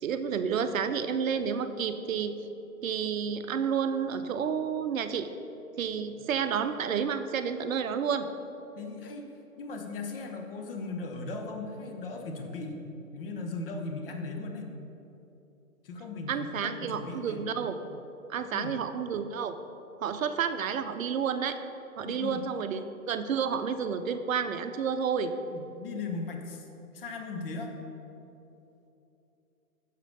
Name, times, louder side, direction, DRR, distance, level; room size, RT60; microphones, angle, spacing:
voice 1, 0.0-2.3 2.8-5.3 5.8-8.3 16.3-17.7 18.3-19.5 20.0-21.6 22.0-25.3, right 7 dB, 65° right, 10 dB, 0.6 m, -30 dB
voice 2, 8.8-9.3 9.6-14.7 15.8-17.5 18.5-18.8 22.0-22.4 25.5-26.7 26.9-27.7, left 3 dB, 40° left, 3 dB, 0.9 m, -38 dB
6.7 x 5.0 x 5.3 m, 2.9 s
hypercardioid pair, 145°, 44 cm